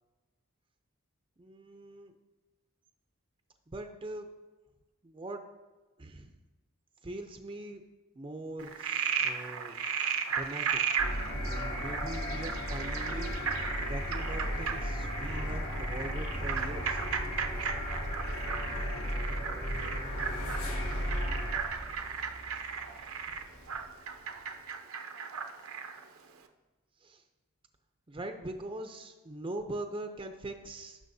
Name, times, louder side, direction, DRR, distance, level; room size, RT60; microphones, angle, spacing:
voice 1, 1.4-2.1 3.7-4.3 5.0-5.4 6.0-6.3 7.0-7.8 8.1-9.8 10.3-10.8 11.5-17.0 27.0-27.2 28.1-31.0, right 1 dB, 25° right, 5 dB, 0.5 m, -42 dB
Frog, 8.6-26.0, right 6 dB, 80° right, 0.7 m, -35 dB
sound 1, 11.0-21.5, equal, 75° left, 2.1 m, -35 dB
sound 2, 12.0-24.7, equal, 90° left, 2.2 m, -49 dB
16.5 x 6.3 x 2.7 m, 1.2 s
head